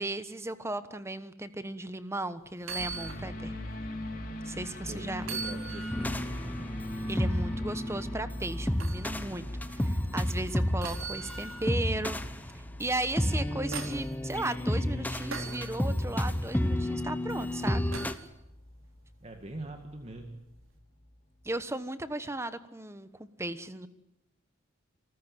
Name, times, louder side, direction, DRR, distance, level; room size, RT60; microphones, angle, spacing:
voice 1, 0.0-3.6 4.4-5.3 7.1-12.2 12.8-17.8 21.4-23.9, right 2 dB, 15° right, 12 dB, 1.2 m, -36 dB
sound 1, 2.6-3.3 3.7-3.8 5.2-6.2 8.8-9.1 10.8-11.8 13.2-14.1 15.3-15.7 17.9-18.3 20.1-20.2, right 4 dB, 85° right, 4.0 m, -39 dB
sound 2, 2.8-21.2 21.5-21.6, left 1 dB, 45° left, 3.5 m, -41 dB
voice 2, 4.9-6.8 19.2-20.4, right 1 dB, 30° right, 5 dB, 2.0 m, -43 dB
sound 3, 5.9-18.1, left 1 dB, 10° left, 1.0 m, -31 dB
28.0 x 14.5 x 9.3 m, 0.85 s
head